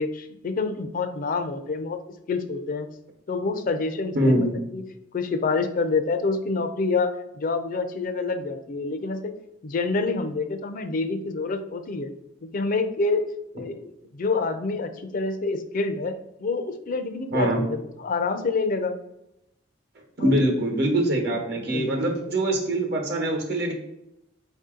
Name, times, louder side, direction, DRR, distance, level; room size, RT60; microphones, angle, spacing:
voice 1, 0.0-2.0 2.3-2.9 3.3-4.5 4.7-4.8 5.1-9.3 9.6-12.1 12.4-13.2 13.5-16.1 16.4-19.0 20.2-20.3 21.5-22.2, left 3 dB, 45° left, 9 dB, 0.4 m, -27 dB
voice 2, 4.1-4.5 17.3-17.6 20.2-23.7, right 1 dB, 60° right, 2 dB, 1.1 m, -23 dB
4.7 x 2.7 x 3.7 m, 0.85 s
head